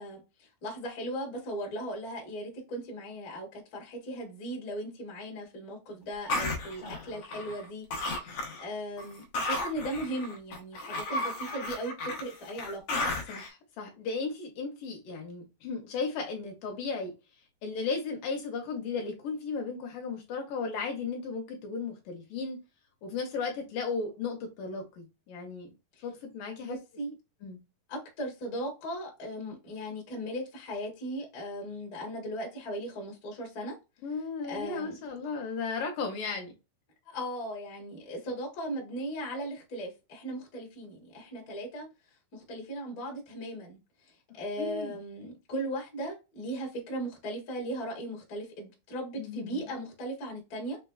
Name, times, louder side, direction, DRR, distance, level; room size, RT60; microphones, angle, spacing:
voice 1, 0.0-12.8 26.0-26.1 26.6-27.1 27.9-33.7 34.5-35.0 37.1-41.9 42.3-43.8 44.3-50.8, right 1 dB, 50° left, 1.0 m, -37 dB
sound 1, 6.3-7.7 7.9-8.7 9.0-13.5, left 2 dB, 90° left, 1.5 m, -34 dB
voice 2, 13.3-17.1 17.6-22.6 23.0-25.7 26.0-26.8 27.4-27.6 34.0-36.5 44.6-45.0 49.2-49.7, left 4 dB, 75° left, 2.2 m, -35 dB
5.9 x 2.3 x 2.3 m
omnidirectional pair, 4.1 m